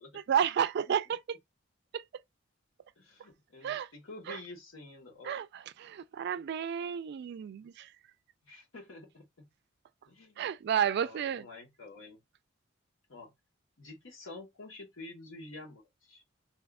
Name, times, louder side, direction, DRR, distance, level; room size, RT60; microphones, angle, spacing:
voice 1, 0.3-1.4 1.9-2.0 3.6-3.9 4.3-4.4 5.2-7.9 10.4-11.5, right 8 dB, 60° right, 0.3 m, -31 dB
voice 2, 3.0-5.4 8.4-9.5 10.1-10.5 10.9-12.2 13.1-13.3 13.8-16.2, left 2 dB, 85° left, 1.2 m, -49 dB
2.7 x 2.4 x 3.5 m
head